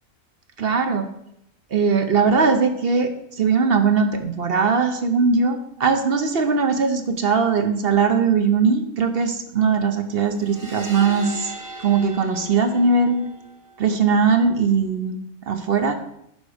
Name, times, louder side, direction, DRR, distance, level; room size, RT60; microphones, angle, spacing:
voice 1, 0.6-1.1 1.7-11.5 11.8-13.3 13.8-15.9, right 5 dB, 50° right, 7 dB, 0.8 m, -20 dB
sound 1, 10.3-14.0, right 1 dB, 15° right, 0.9 m, -38 dB
11.5 x 5.1 x 4.9 m, 0.79 s
omnidirectional pair, 1.5 m